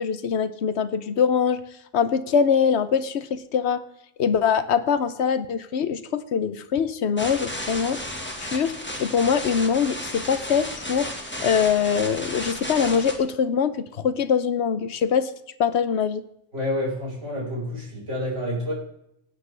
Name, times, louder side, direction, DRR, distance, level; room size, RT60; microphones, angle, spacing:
voice 1, 0.0-1.6 1.9-3.8 4.2-8.0 8.4-11.1 11.4-15.3 15.6-16.2, left 7 dB, 65° left, 13 dB, 1.0 m, -23 dB
sound 1, 7.2-13.2, left 1 dB, 10° left, 1.5 m, -33 dB
voice 2, 16.5-18.7, left 1 dB, 75° right, -3 dB, 4.9 m, -28 dB
17.5 x 9.1 x 3.3 m, 0.77 s
omnidirectional pair, 1.3 m